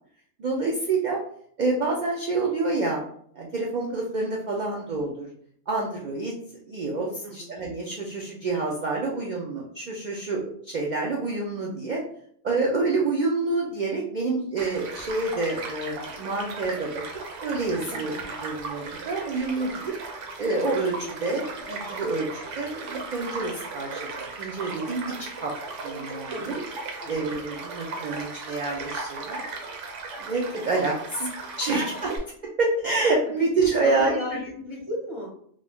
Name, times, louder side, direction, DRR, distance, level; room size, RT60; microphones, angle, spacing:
voice 1, 0.4-1.2 1.6-3.0 3.3-5.3 5.7-6.3 6.7-12.0 12.4-16.9 17.4-18.1 18.4-19.9 20.4-25.1 25.4-25.5 25.8-26.5 27.1-29.4 30.2-31.3 31.6-32.1 32.4-34.1, right 3 dB, 60° right, -2 dB, 0.4 m, -27 dB
Child speech kid speaking / Stream / Car passing by, 14.6-32.2, right 3 dB, 80° right, 1.0 m, -36 dB
voice 2, 17.9-18.2 26.3-26.6 27.0-27.4 33.6-35.3, left 1 dB, 35° left, -4 dB, 0.5 m, -35 dB
2.5 x 2.3 x 3.4 m, 0.64 s
omnidirectional pair, 1.2 m